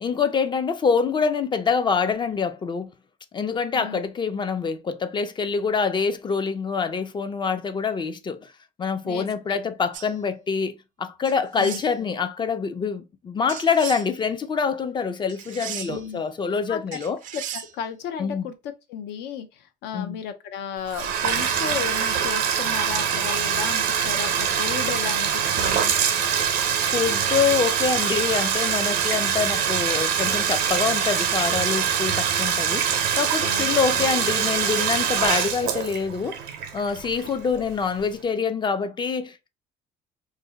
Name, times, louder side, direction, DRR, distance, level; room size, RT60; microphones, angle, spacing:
voice 1, 0.0-2.9 3.3-8.5 8.8-17.2 18.2-18.5 19.9-20.2 26.8-36.4 36.7-39.5, left 5 dB, 25° left, 0.4 m, -25 dB
voice 2, 9.0-9.6 11.6-11.8 15.9-16.2 16.7-16.8 17.3-18.5 18.9-25.9 33.4-34.1, left 8 dB, 80° left, 0.6 m, -34 dB
sound 1, 9.9-10.1 11.2-11.9 13.5-14.1 15.3-16.1 16.9-17.7, right 10 dB, 50° right, 0.4 m, -36 dB
Bathtub (filling or washing), 20.9-37.6, right 8 dB, 85° right, 0.7 m, -24 dB
2.5 x 2.1 x 3.8 m
cardioid pair, 110°, 17 cm